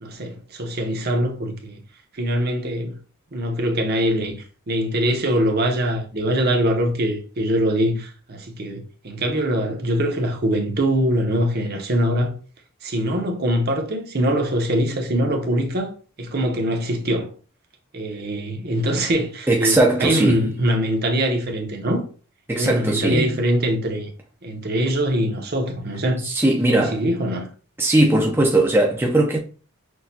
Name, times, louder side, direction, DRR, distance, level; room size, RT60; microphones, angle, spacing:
voice 1, 0.0-1.8 2.1-2.9 3.3-4.3 4.7-12.4 12.8-15.9 16.2-17.3 17.9-22.0 22.5-24.1 24.4-26.2 26.7-27.5, equal, 45° right, 0.8 m, -23 dB
voice 2, 19.5-20.4 22.5-23.3 26.2-27.0 27.8-29.4, right 1 dB, 10° right, 0.5 m, -19 dB
6.2 x 2.3 x 2.7 m
head